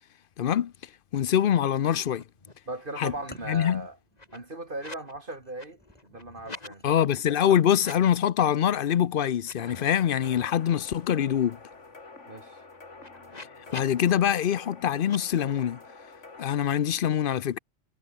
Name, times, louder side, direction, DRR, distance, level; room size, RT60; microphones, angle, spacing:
voice 1, 0.4-0.7 1.1-2.2 3.0-3.1 3.5-3.8 6.8-11.6 13.7-15.8 16.4-17.6, left 9 dB, 55° left, 0.7 m, -24 dB
sound 1, 1.6-2.7 3.0-5.1 5.4-6.7 7.7-8.4 8.8-9.0 9.3-10.7 11.1-11.2 11.4-14.1 15.0-15.2, left 2 dB, 35° left, 2.3 m, -47 dB
voice 2, 2.7-4.0 4.3-6.9 12.3-12.6, right 2 dB, 45° right, 3.4 m, -38 dB
sound 2, 3.1-6.9, equal, 10° left, 5.2 m, -54 dB
sound 3, 9.6-16.4, left 3 dB, 75° left, 3.3 m, -48 dB
omnidirectional pair, 1.2 m